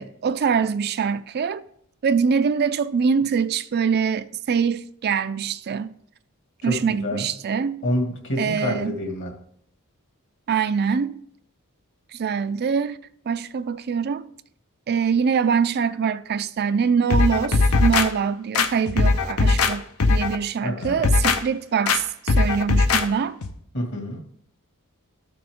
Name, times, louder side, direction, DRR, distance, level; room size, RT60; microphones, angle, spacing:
voice 1, 0.0-1.6 2.0-5.9 6.6-7.8 8.4-8.9 10.5-11.2 12.1-13.0 13.3-14.3 14.9-23.4, right 6 dB, 45° right, 0.4 m, -24 dB
voice 2, 6.6-7.3 7.8-9.3 20.6-21.0 23.7-24.2, left 1 dB, 55° left, 2.1 m, -27 dB
sound 1, 17.1-18.1 18.5-19.7 20.0-20.4 20.8-21.4 21.9-22.0 22.3-23.0 23.4-23.5, left 3 dB, 70° left, 0.8 m, -19 dB
13.0 x 6.9 x 3.6 m
head